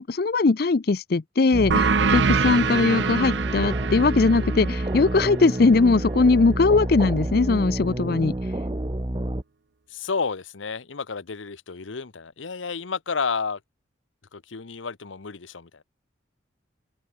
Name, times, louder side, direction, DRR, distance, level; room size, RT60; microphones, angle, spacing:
voice 1, 0.0-8.4, left 3 dB, 50° left, 0.5 m, -20 dB
sound 1, 1.5-9.4, right 1 dB, 25° right, 0.8 m, -29 dB
sound 2, 1.7-6.9, right 5 dB, 70° right, 0.7 m, -26 dB
voice 2, 9.9-13.6 14.3-15.8, left 5 dB, 85° left, 0.9 m, -31 dB
head